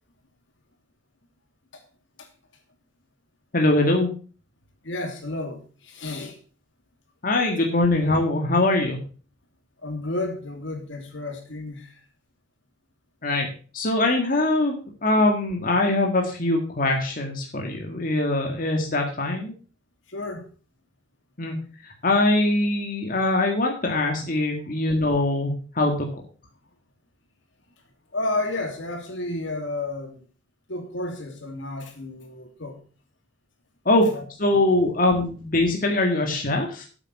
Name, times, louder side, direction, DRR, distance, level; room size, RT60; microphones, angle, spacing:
voice 1, 3.5-4.1 7.2-9.0 13.2-14.7 15.0-19.5 21.4-21.6 22.0-25.9 33.9-34.0 34.4-36.9, left 2 dB, 45° left, 2 dB, 2.0 m, -22 dB
voice 2, 4.8-6.4 9.8-12.0 20.1-20.5 28.1-30.2 30.7-32.8 34.0-34.8 36.0-36.2, left 2 dB, 75° left, 4 dB, 2.6 m, -32 dB
8.7 x 8.5 x 6.0 m, 0.38 s
head